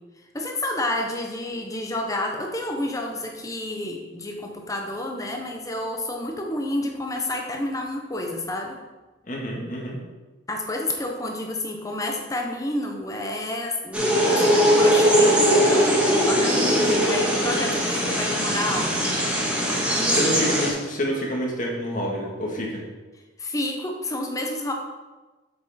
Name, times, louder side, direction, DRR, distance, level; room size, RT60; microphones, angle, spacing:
voice 1, 0.3-8.8 10.5-18.9 20.0-20.5 23.4-24.7, left 1 dB, 20° left, 2 dB, 1.0 m, -29 dB
voice 2, 9.3-10.0 19.9-22.8, equal, 45° left, -2 dB, 1.8 m, -28 dB
sound 1, 13.9-20.7, equal, 5° right, 1.5 m, -20 dB
7.7 x 6.4 x 4.3 m, 1.2 s
head